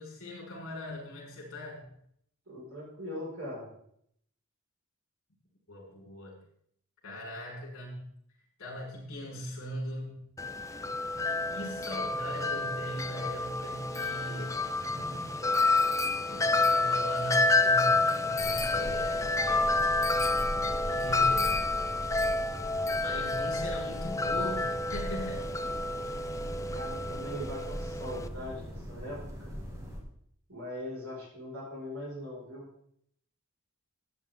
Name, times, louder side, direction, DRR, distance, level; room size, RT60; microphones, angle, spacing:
voice 1, 0.0-1.8 5.7-6.4 7.0-8.1 8.6-10.3 11.5-14.6 16.3-19.8 20.5-21.6 23.0-25.5, left 1 dB, 65° left, -2 dB, 5.3 m, -40 dB
voice 2, 2.5-3.7 26.7-29.5 30.5-32.7, left 1 dB, 65° right, -5 dB, 5.5 m, -40 dB
Wind chime, 10.4-28.3, left 3 dB, 15° left, 0.3 m, -29 dB
sound 1, 14.4-18.3 19.3-19.9 20.4-20.5 20.9-21.3 22.4-22.5 23.9-24.3 25.5-25.6, equal, 90° right, 2.9 m, -48 dB
sound 2, 18.4-30.0, equal, 15° right, 1.9 m, -40 dB
13.5 x 8.8 x 3.7 m, 0.68 s
head